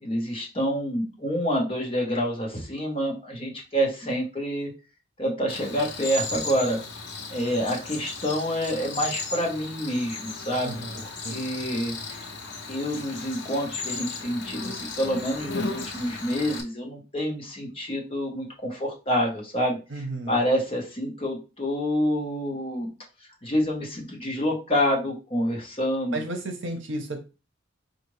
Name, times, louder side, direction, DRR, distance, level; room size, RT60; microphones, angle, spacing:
voice 1, 0.0-4.7 5.2-6.8 7.3-11.0 11.3-12.2 12.7-19.8 20.3-22.9 23.4-26.2, equal, 25° left, -1 dB, 1.1 m, -27 dB
Cricket, 5.5-16.6, left 3 dB, 55° left, 0.8 m, -36 dB
voice 2, 10.6-11.4 19.9-20.4 26.1-27.2, right 2 dB, 60° right, 5 dB, 0.9 m, -33 dB
4.9 x 2.5 x 3.2 m, 0.30 s
head